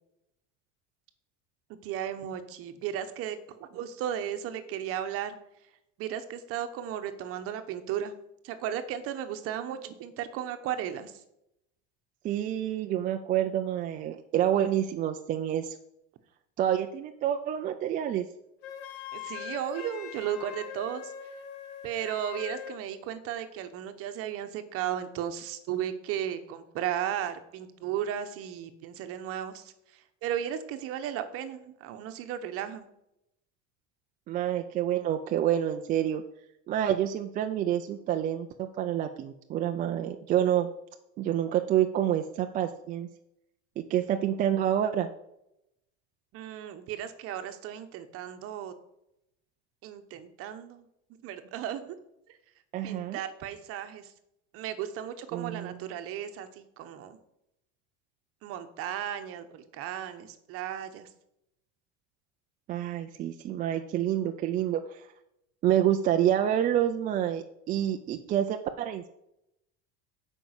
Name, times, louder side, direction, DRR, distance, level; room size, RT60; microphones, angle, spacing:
voice 1, 1.8-5.4 6.0-8.1 8.4-11.2 19.1-21.1 21.8-32.9 46.3-48.7 49.8-50.9 51.2-52.0 52.3-52.4 52.8-54.1 54.5-57.2 58.4-61.1, right 10 dB, 45° right, 9 dB, 1.1 m, -35 dB
voice 2, 12.2-15.8 16.6-18.3 34.3-36.2 36.7-40.7 41.2-43.1 43.8-45.1 52.7-53.2 55.3-55.7 62.7-65.1 65.6-69.1, right 11 dB, 25° right, 6 dB, 0.4 m, -28 dB
Wind instrument woodwind instrument, 18.6-22.8, left 9 dB, 75° left, 1.7 m, -42 dB
9.1 x 5.4 x 8.1 m, 0.81 s
cardioid pair, 170°, 33 cm